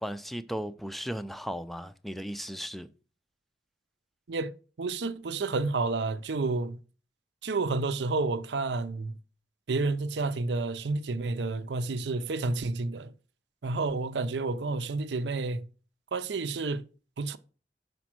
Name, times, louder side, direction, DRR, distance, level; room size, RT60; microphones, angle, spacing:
voice 1, 0.0-2.9, equal, ahead, 0.4 m, -36 dB
voice 2, 4.8-6.8 7.4-9.2 9.7-13.1 13.6-15.6 16.1-16.8 17.2-17.4, right 3 dB, 85° right, 0.6 m, -30 dB
6.0 x 5.2 x 6.0 m
head